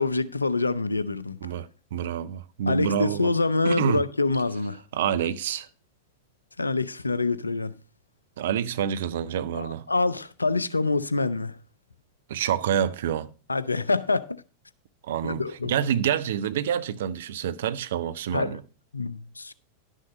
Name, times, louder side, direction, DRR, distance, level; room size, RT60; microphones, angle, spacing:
voice 1, 0.0-1.4 2.7-4.8 6.6-7.7 9.5-11.6 13.5-14.4 15.2-15.7 18.3-18.6 18.9-19.5, left 3 dB, 80° left, 0.5 m, -26 dB
voice 2, 1.4-3.3 3.6-4.1 4.9-5.7 8.4-9.9 12.3-13.3 15.0-18.6, right 9 dB, 60° right, 0.6 m, -27 dB
11.0 x 6.3 x 4.9 m
figure-of-eight pair, 90°, 0 cm